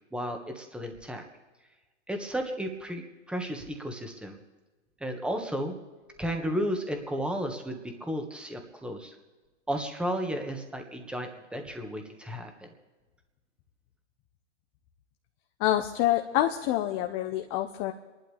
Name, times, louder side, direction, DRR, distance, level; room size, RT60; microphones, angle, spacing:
voice 1, 0.1-1.2 2.1-3.0 3.3-4.4 5.0-5.7 6.2-9.2 9.7-12.7, equal, 5° right, 4 dB, 1.7 m, -33 dB
voice 2, 15.6-17.9, left 13 dB, 40° left, 5 dB, 1.0 m, -27 dB
30.0 x 11.5 x 3.5 m, 1.2 s
hypercardioid pair, 115°, 35 cm